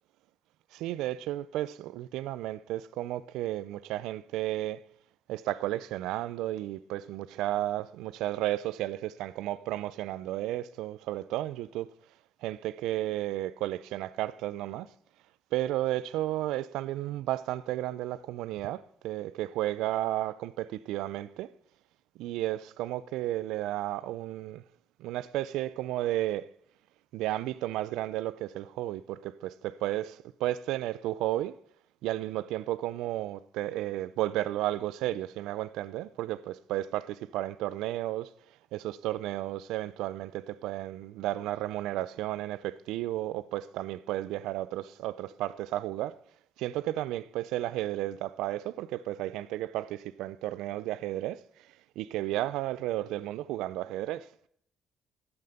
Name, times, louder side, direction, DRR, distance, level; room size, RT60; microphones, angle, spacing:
voice 1, 0.7-4.8 5.3-11.9 12.4-14.9 15.5-21.5 22.2-24.6 25.0-26.5 27.1-31.6 32.0-38.3 38.7-46.2 46.6-51.4 52.0-54.3, right 14 dB, 85° right, 0.4 m, -33 dB
9.3 x 7.9 x 6.6 m
supercardioid pair, 70°, 0 cm